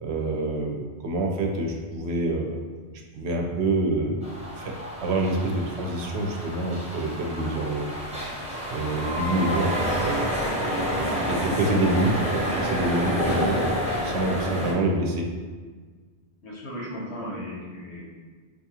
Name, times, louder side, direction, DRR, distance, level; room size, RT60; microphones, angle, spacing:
voice 1, 0.0-2.6 3.1-4.2 4.6-4.7 5.0-7.9 8.7-10.3 11.3-13.7 14.0-15.3, right 2 dB, 75° right, 1 dB, 0.8 m, -26 dB
sound 1, 4.2-14.7, equal, 5° right, 0.6 m, -29 dB
voice 2, 16.4-18.0, equal, 80° left, -4 dB, 1.2 m, -36 dB
4.1 x 2.4 x 2.8 m, 1.5 s
omnidirectional pair, 1.1 m